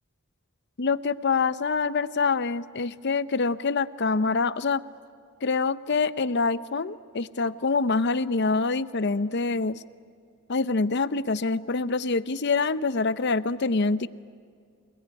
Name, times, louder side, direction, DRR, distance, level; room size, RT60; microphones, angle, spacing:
voice 1, 0.8-4.8 5.4-9.8 10.5-14.1, left 4 dB, 55° left, 15 dB, 0.7 m, -25 dB
27.0 x 20.0 x 9.7 m, 2.2 s
head